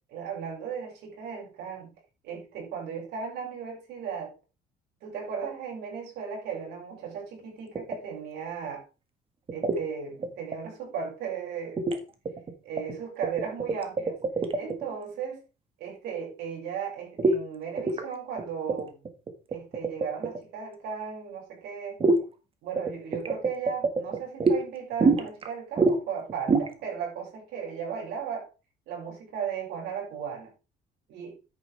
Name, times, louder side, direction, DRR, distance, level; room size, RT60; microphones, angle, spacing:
voice 1, 0.1-1.9 2.2-4.3 5.0-8.8 9.5-11.8 12.6-14.2 14.5-15.4 15.8-19.0 19.5-22.0 22.6-28.5 28.9-30.5 31.1-31.3, right 7 dB, 80° right, -1 dB, 6.2 m, -36 dB
sound 1, 7.8-8.0 9.5-9.8 10.2-10.6 11.8-12.0 12.3-13.0 13.2-14.9 17.2-17.4 17.8-18.1 18.4-18.5 18.7-20.4 22.0-22.2 22.8-24.6 25.0-25.5 25.8-26.0 26.3-26.7, right 3 dB, 35° right, 1.8 m, -25 dB
10.5 x 8.6 x 3.5 m, 0.31 s
cardioid pair, 110°, 17 cm